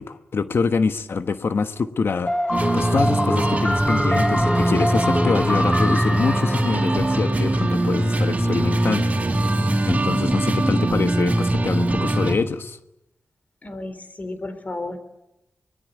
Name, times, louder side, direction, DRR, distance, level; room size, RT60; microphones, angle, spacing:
voice 1, 0.0-9.1 9.4-9.5 9.9-12.8, left 5 dB, 65° left, 9 dB, 1.3 m, -25 dB
sound 1, 2.3-8.1, left 1 dB, 10° left, 1.1 m, -25 dB
sound 2, 2.5-12.4, right 1 dB, 35° right, 3.5 m, -21 dB
voice 2, 13.6-15.0, left 2 dB, 35° left, 10 dB, 3.8 m, -32 dB
24.5 x 21.0 x 9.4 m, 0.88 s
wide cardioid pair, 85°, 4 cm